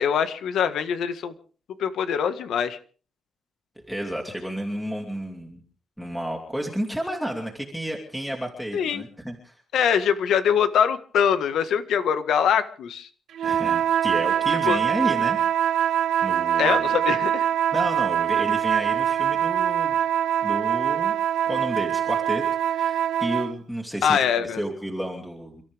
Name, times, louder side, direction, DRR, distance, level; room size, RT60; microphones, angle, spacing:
voice 1, 0.0-1.3 1.8-2.8 8.7-9.0 9.7-13.1 14.7-14.8 16.6-17.4 24.0-24.6, left 8 dB, 85° left, 10 dB, 1.6 m, -23 dB
voice 2, 3.9-5.6 6.0-9.6 13.4-15.4 16.2-16.9 17.7-20.0 20.4-21.1 21.4-22.4 22.7-25.6, equal, ahead, 1 dB, 2.9 m, -31 dB
sound 1, 13.3-23.6, right 9 dB, 85° right, 0.7 m, -23 dB
29.5 x 13.5 x 3.5 m, 0.40 s
cardioid pair, 130°, 0 cm